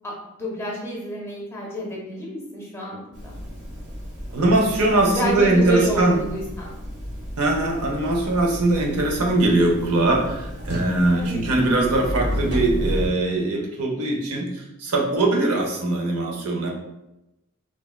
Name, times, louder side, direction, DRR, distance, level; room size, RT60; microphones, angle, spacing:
voice 1, 0.0-3.3 5.1-6.7 11.1-11.4, equal, 10° left, -3 dB, 0.5 m, -29 dB
sound 1, 3.1-13.1, equal, 50° right, 0.9 m, -32 dB
voice 2, 4.3-6.2 7.4-16.7, right 2 dB, 85° right, 0 dB, 0.6 m, -21 dB
3.3 x 2.1 x 2.2 m, 0.93 s
head